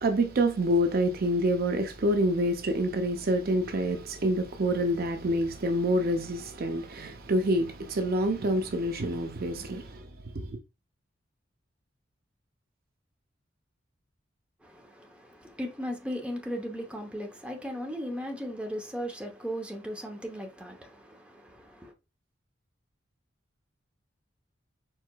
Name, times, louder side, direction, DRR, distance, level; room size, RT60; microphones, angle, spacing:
voice 1, 0.0-10.0 10.3-10.6, right 1 dB, 50° right, 0.5 m, -27 dB
voice 2, 14.6-21.9, equal, 5° right, 0.8 m, -37 dB
4.6 x 4.3 x 2.3 m
head